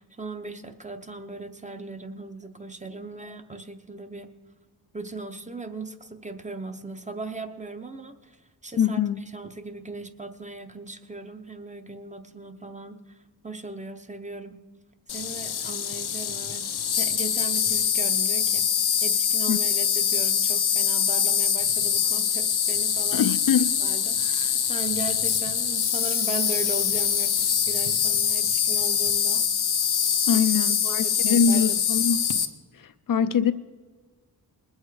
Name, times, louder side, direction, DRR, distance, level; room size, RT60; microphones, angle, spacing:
voice 1, 0.0-4.3 4.9-8.4 8.6-13.2 13.4-14.6 15.1-23.3 23.8-29.5 30.3-31.8, right 3 dB, 20° right, 0.7 m, -38 dB
voice 2, 8.8-9.2 19.5-19.6 23.1-23.7 30.3-32.2 32.7-33.5, left 7 dB, 60° left, 0.5 m, -23 dB
Insect, 15.1-32.4, left 8 dB, 90° left, 0.9 m, -24 dB
20.5 x 8.0 x 4.8 m
wide cardioid pair, 155°, 38 cm